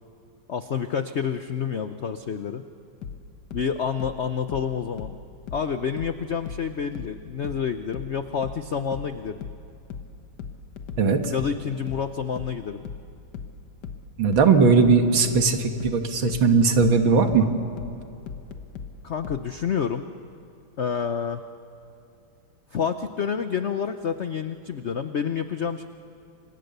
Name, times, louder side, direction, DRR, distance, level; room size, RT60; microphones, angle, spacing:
voice 1, 0.5-2.6 3.5-5.1 5.5-9.5 11.3-12.9 19.0-20.1 20.8-21.4 22.7-25.9, left 7 dB, 85° left, 9 dB, 0.6 m, -28 dB
sound 1, 3.0-6.2 6.5-19.5, left 6 dB, 60° left, 1.8 m, -38 dB
voice 2, 11.0-11.3 14.2-17.5, right 4 dB, 70° right, 6 dB, 2.3 m, -19 dB
29.5 x 25.0 x 6.8 m, 2.7 s
omnidirectional pair, 2.2 m